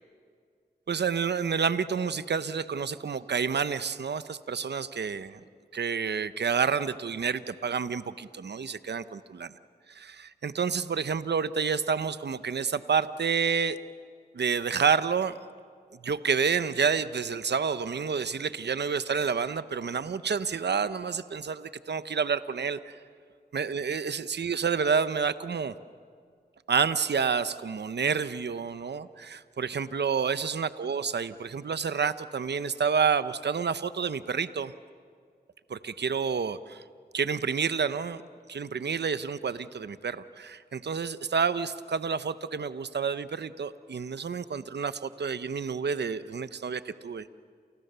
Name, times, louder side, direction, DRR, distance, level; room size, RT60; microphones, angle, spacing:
voice 1, 0.9-5.4 5.7-9.5 10.3-13.8 14.3-15.4 16.0-23.0 23.5-25.7 26.7-34.7 35.7-36.8 37.1-38.2 38.5-47.4, right 6 dB, 80° right, 13 dB, 0.9 m, -29 dB
29.5 x 29.5 x 6.9 m, 2.1 s
cardioid pair, 45°, 17 cm